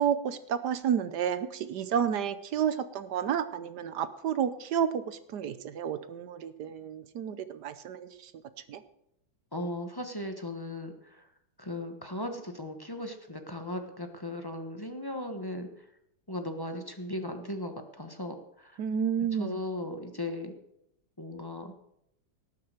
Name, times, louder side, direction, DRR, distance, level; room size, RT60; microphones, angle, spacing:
voice 1, 0.0-8.3 8.7-8.8 18.8-19.6, right 8 dB, 65° right, 13 dB, 1.3 m, -31 dB
voice 2, 9.5-11.2 11.6-15.7 16.3-18.8 19.2-20.5 21.2-21.7, left 1 dB, 15° left, 5 dB, 1.0 m, -37 dB
18.0 x 6.8 x 6.7 m, 0.77 s
omnidirectional pair, 2.0 m